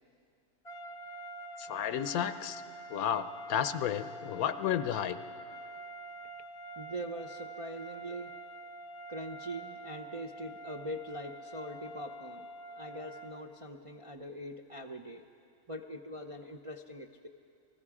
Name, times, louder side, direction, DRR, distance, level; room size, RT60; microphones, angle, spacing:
sound 1, 0.6-13.5, right 1 dB, 30° left, 0.7 m, -46 dB
voice 1, 1.6-2.6 2.9-5.2, left 9 dB, 75° left, 12 dB, 1.1 m, -32 dB
voice 2, 6.8-8.3 9.1-15.2 15.7-17.3, equal, 35° right, 2 dB, 0.5 m, -42 dB
29.5 x 19.5 x 4.9 m, 2.4 s
omnidirectional pair, 1.6 m